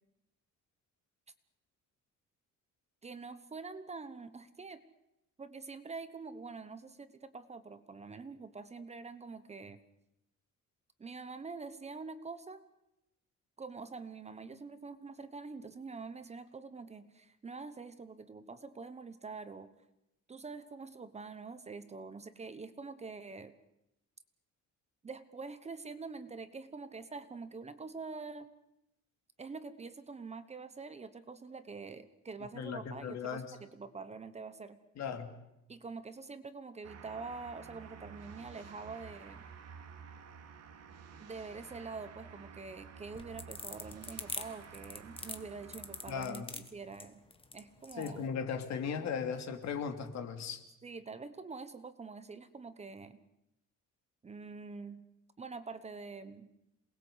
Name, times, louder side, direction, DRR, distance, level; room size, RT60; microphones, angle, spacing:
voice 1, 3.0-4.8 5.4-9.8 11.0-12.6 13.6-19.7 20.3-23.5 25.0-28.5 29.4-34.8 35.7-39.4 41.2-47.2 47.5-48.3 50.8-53.2 54.2-55.1 55.4-56.5, right 4 dB, 20° right, 11 dB, 1.1 m, -45 dB
voice 2, 32.5-33.5 35.0-35.3 46.1-46.5 48.0-50.6, left 6 dB, 60° left, 6 dB, 2.8 m, -37 dB
sound 1, 36.8-46.3, right 6 dB, 55° right, 2.6 m, -52 dB
sound 2, 43.0-48.2, left 4 dB, 15° left, 1.6 m, -43 dB
27.5 x 20.5 x 8.2 m, 0.86 s
cardioid pair, 175°, 30 cm